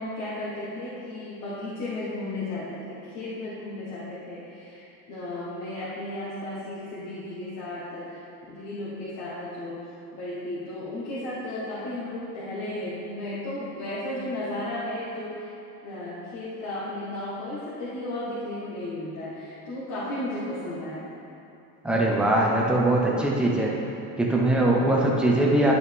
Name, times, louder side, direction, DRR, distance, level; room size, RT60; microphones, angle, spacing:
voice 1, 0.0-8.2 8.5-9.8 10.1-15.5 15.8-21.1, left 1 dB, 40° left, -9 dB, 1.6 m, -34 dB
voice 2, 21.8-23.7 24.2-25.7, right 1 dB, ahead, -3 dB, 0.7 m, -21 dB
10.5 x 6.9 x 3.5 m, 2.8 s
cardioid pair, 160°, 45 cm